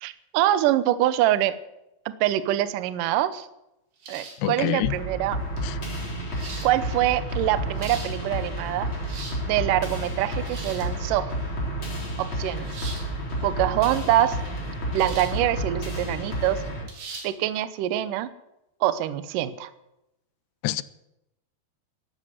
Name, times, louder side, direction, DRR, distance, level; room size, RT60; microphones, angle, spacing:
voice 1, 0.0-1.5 2.1-3.5 4.1-5.4 6.6-8.9 9.5-11.3 12.2-12.7 13.4-14.4 14.9-16.6 17.2-18.3 18.8-19.7, right 13 dB, 75° right, 2.0 m, -24 dB
sound 1, 4.0-4.5 5.6-5.7 6.3-6.7 7.5-8.1 8.9-9.4 10.4-10.9 12.6-13.1 15.0-15.4 15.8-15.9 16.9-17.3, right 4 dB, 60° right, 4.4 m, -40 dB
voice 2, 4.4-5.0 5.6-5.8 20.6-20.8, left 15 dB, 85° left, 2.8 m, -26 dB
sound 2, 4.8-16.8, right 1 dB, 30° left, 4.6 m, -31 dB
13.5 x 11.5 x 7.8 m
omnidirectional pair, 4.8 m